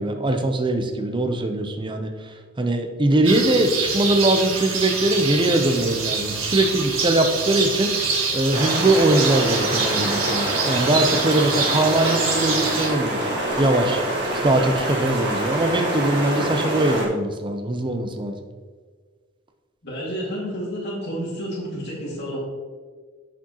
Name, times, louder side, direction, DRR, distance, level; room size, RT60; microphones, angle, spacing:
voice 1, 0.0-13.2 13.6-14.0 14.4-18.3, right 1 dB, 25° right, 5 dB, 0.6 m, -21 dB
sound 1, 3.2-12.9, right 4 dB, 85° right, 1.8 m, -25 dB
sound 2, 8.5-17.1, right 1 dB, 55° right, 1.7 m, -26 dB
voice 2, 19.8-22.4, equal, 55° left, -6 dB, 2.2 m, -30 dB
10.5 x 5.0 x 3.0 m, 1.5 s
head